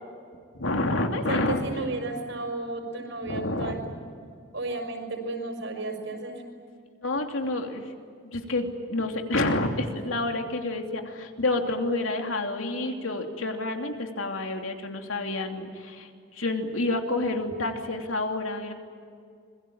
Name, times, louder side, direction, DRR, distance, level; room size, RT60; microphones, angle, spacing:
voice 1, 0.5-1.6 3.2-3.7 7.0-7.8 8.2-18.7, left 2 dB, 80° left, 3 dB, 3.0 m, -29 dB
voice 2, 1.3-3.8 4.5-6.4, right 2 dB, 70° right, 4 dB, 5.9 m, -33 dB
26.5 x 22.0 x 8.8 m, 2.2 s
head